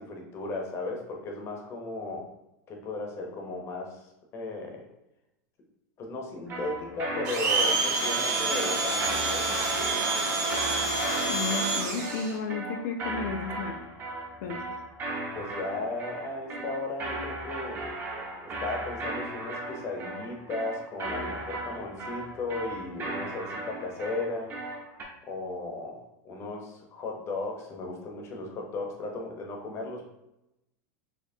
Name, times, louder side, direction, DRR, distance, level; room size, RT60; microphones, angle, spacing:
voice 1, 0.0-2.3 2.7-4.8 6.0-9.5 14.4-14.6 15.3-17.8 18.6-24.5 25.3-30.1, left 3 dB, 25° left, 0 dB, 0.7 m, -36 dB
sound 1, 6.5-25.0, right 2 dB, 20° right, 0.7 m, -37 dB
Domestic sounds home sounds, 7.2-12.3, right 3 dB, 65° right, 1.3 m, -27 dB
voice 2, 11.3-13.8 14.4-14.6, left 4 dB, 65° left, 3 dB, 0.5 m, -33 dB
4.2 x 2.8 x 2.7 m, 0.89 s
supercardioid pair, 155°, 10 cm